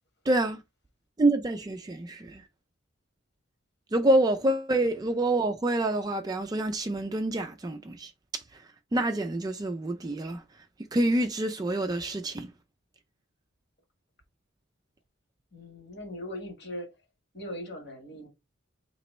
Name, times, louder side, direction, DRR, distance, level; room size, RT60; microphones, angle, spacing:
voice 1, 0.3-0.6 1.2-2.4 3.9-8.6 8.9-10.4 10.9-12.5, right 1 dB, 20° right, 0.3 m, -27 dB
voice 2, 15.5-16.9 17.3-18.3, left 1 dB, 50° left, 1.4 m, -39 dB
4.2 x 2.9 x 3.0 m
head